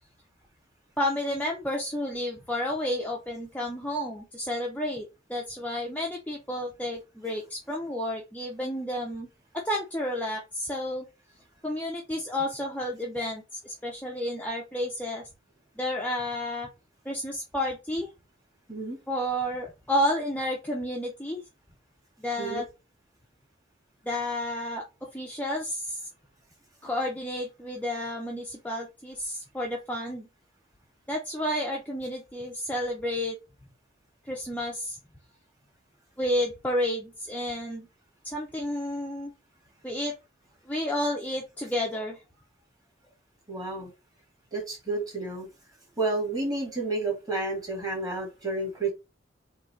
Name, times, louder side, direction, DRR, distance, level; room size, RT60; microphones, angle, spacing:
voice 1, 1.0-5.0 5.3-9.3 9.5-11.1 11.6-15.2 15.8-16.7 17.0-18.1 19.1-21.4 22.2-22.7 24.0-26.0 26.8-30.3 31.1-33.4 34.3-35.0 36.2-37.9 38.2-39.3 39.8-40.1 40.7-42.2, left 1 dB, 10° left, -1 dB, 0.7 m, -31 dB
voice 2, 43.5-43.9 44.5-45.5 46.0-48.9, right 2 dB, 20° right, -1 dB, 1.9 m, -30 dB
3.9 x 2.9 x 4.2 m, 0.26 s
head